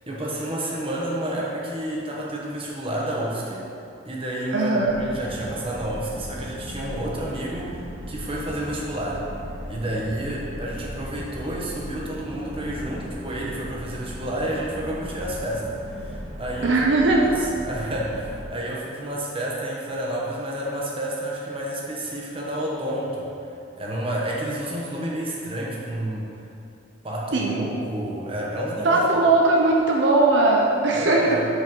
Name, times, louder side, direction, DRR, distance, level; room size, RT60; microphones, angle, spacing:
voice 1, 0.1-3.7 4.0-9.2 9.7-16.8 17.2-23.3 23.8-26.4 27.0-29.3 30.9-31.5, right 1 dB, 30° right, -4 dB, 1.2 m, -30 dB
voice 2, 4.5-5.0 16.6-17.3 27.3-27.7 28.8-31.4, right 2 dB, 65° right, -1 dB, 0.6 m, -19 dB
sound 1, 4.9-18.4, equal, 55° left, 1.7 m, -37 dB
7.9 x 4.4 x 5.4 m, 2.6 s
head